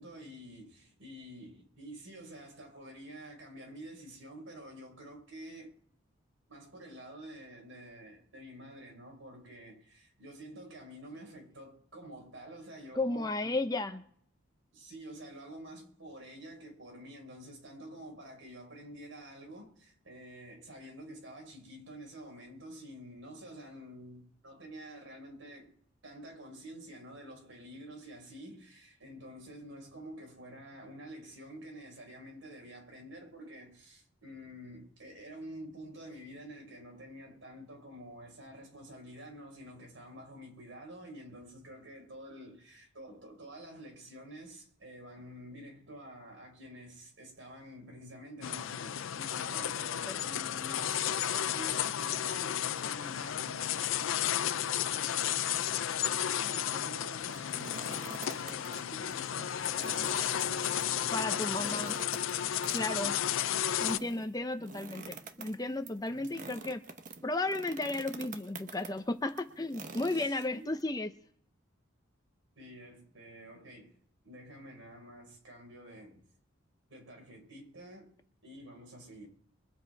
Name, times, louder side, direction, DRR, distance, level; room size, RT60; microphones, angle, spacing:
voice 1, 0.0-5.7 6.5-13.6 14.7-25.7 26.0-55.9 56.2-58.0 58.3-61.9 62.9-63.4 66.1-66.5 70.1-70.8 72.5-74.0 74.2-76.2 76.9-78.1 78.4-79.3, right 1 dB, 70° right, 5.2 m, -49 dB
voice 2, 12.9-14.0 50.1-50.2 61.1-62.0 62.7-63.2 63.8-66.8 67.2-71.1, left 2 dB, 20° left, 0.6 m, -34 dB
sound 1, 48.4-64.0, left 10 dB, 75° left, 0.5 m, -33 dB
sound 2, 57.2-58.8 59.1-59.2 59.6-70.8, right 3 dB, 40° right, 1.0 m, -47 dB
23.0 x 8.0 x 4.6 m
head